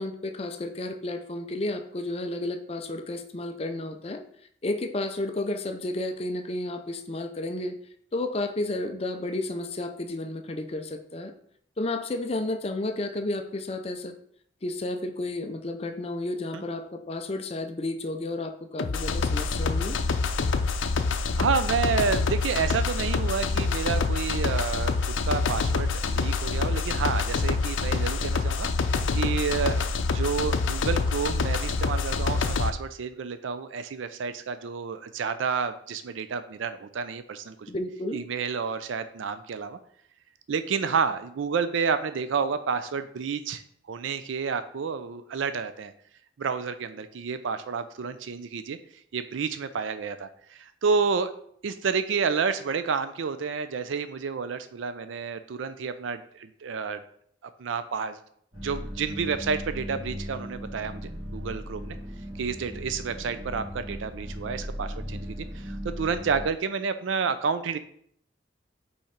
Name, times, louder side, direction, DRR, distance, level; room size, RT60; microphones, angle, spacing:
voice 1, 0.0-4.2 4.6-7.8 8.1-11.3 11.8-14.2 14.6-20.0 37.7-38.2, left 2 dB, 30° left, 7 dB, 0.5 m, -32 dB
sound 1, 18.8-32.7, left 4 dB, 90° left, 0.5 m, -26 dB
voice 2, 21.4-37.7 38.1-39.8 40.5-43.6 43.9-45.9 46.4-48.8 49.1-51.3 51.6-57.0 57.6-58.2 58.6-62.0 62.4-67.8, right 5 dB, 90° right, 11 dB, 0.4 m, -30 dB
sound 2, 58.5-66.4, equal, 30° right, 2.4 m, -37 dB
5.5 x 4.3 x 5.1 m, 0.65 s
head